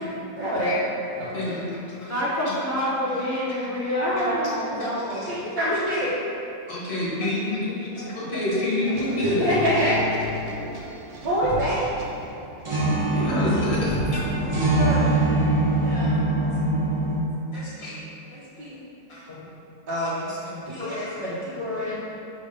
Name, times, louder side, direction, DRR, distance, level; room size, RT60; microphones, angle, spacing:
voice 1, 0.4-0.8 1.1-1.4 4.0-6.1 7.9-9.9 10.2-10.3 11.2-11.9 15.7-16.4 18.3-18.9 19.9-20.4 20.7-22.0, equal, 75° right, -11 dB, 1.7 m, -28 dB
voice 2, 2.1-5.2 14.4-15.3, equal, 20° left, -8 dB, 0.4 m, -27 dB
voice 3, 4.8-5.2 6.7-9.5 13.1-14.3 17.5-18.0 19.1-19.4 20.5-20.9, left 1 dB, 40° left, -7 dB, 1.5 m, -28 dB
sound 1, 8.9-12.6, left 1 dB, 60° right, 0.8 m, -34 dB
sound 2, 11.3-11.8 12.2-12.3 12.6-17.2, right 2 dB, 25° right, 0.6 m, -23 dB
5.0 x 3.8 x 5.2 m, 2.9 s
omnidirectional pair, 1.9 m